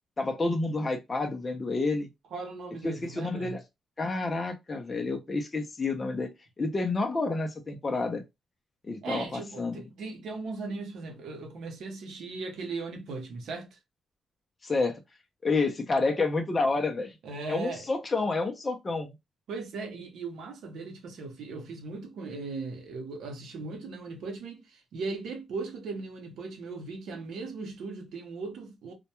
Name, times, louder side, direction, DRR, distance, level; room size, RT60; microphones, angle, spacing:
voice 1, 0.2-2.1 2.8-3.6 4.0-6.3 6.6-8.2 8.8-9.8 14.6-15.0 15.4-17.1 17.5-19.1, left 3 dB, 25° left, 0.4 m, -29 dB
voice 2, 2.3-3.6 9.0-13.8 17.2-17.9 19.5-28.9, right 3 dB, 80° right, 0.7 m, -38 dB
2.1 x 2.1 x 2.8 m
cardioid pair, 140°, 0 cm